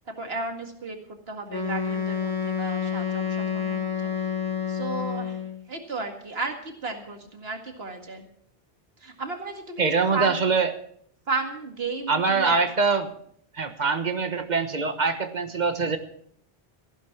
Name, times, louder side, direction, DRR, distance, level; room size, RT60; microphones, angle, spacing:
voice 1, 0.1-4.3 4.7-5.4 5.7-8.3 9.0-9.8 10.1-10.5 11.3-12.6, right 3 dB, 65° right, 4 dB, 2.2 m, -33 dB
Wind instrument woodwind instrument, 1.5-5.6, left 7 dB, 20° left, 1.7 m, -29 dB
voice 2, 9.8-10.7 12.1-13.1 13.5-16.0, right 4 dB, 45° right, 9 dB, 1.4 m, -24 dB
15.0 x 11.0 x 6.0 m, 0.66 s
omnidirectional pair, 1.1 m